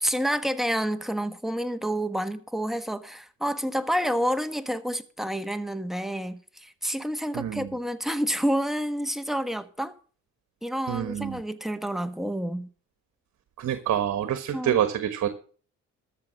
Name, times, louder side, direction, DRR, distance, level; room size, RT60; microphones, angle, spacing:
voice 1, 0.0-9.9 10.6-12.7 14.5-14.8, equal, ahead, 1.3 m, -29 dB
voice 2, 7.3-7.7 10.9-11.4 13.6-15.3, right 10 dB, 65° right, 1.4 m, -27 dB
13.5 x 6.7 x 7.5 m
cardioid pair, 90°, 30 cm